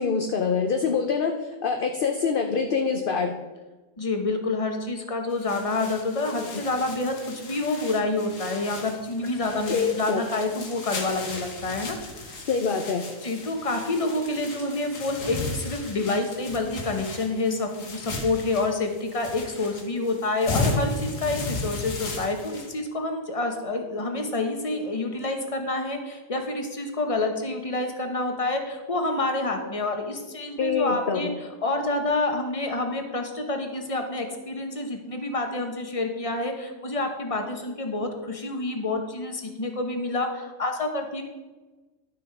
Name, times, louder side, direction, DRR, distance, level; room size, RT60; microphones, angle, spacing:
voice 1, 0.0-3.3 6.4-6.5 9.7-10.2 12.5-13.0 30.6-31.3, left 5 dB, 50° left, 4 dB, 0.7 m, -25 dB
voice 2, 4.0-12.4 13.2-31.3 31.6-41.2, left 2 dB, 25° left, 4 dB, 1.1 m, -28 dB
sound 1, 5.3-22.7, left 2 dB, 65° left, 1.8 m, -35 dB
11.5 x 6.1 x 4.8 m, 1.2 s
omnidirectional pair, 1.5 m